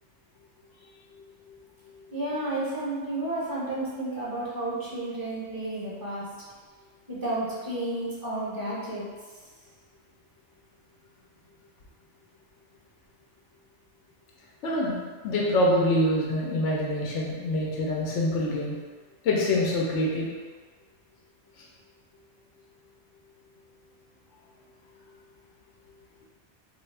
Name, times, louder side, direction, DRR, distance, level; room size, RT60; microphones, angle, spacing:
voice 1, 2.1-6.3 7.1-9.0, right 1 dB, 20° right, -7 dB, 0.8 m, -31 dB
voice 2, 14.6-15.0 15.2-18.8 19.2-20.3 21.6-21.7, left 1 dB, 75° left, -3 dB, 0.9 m, -25 dB
3.3 x 2.4 x 3.2 m, 1.5 s
omnidirectional pair, 1.2 m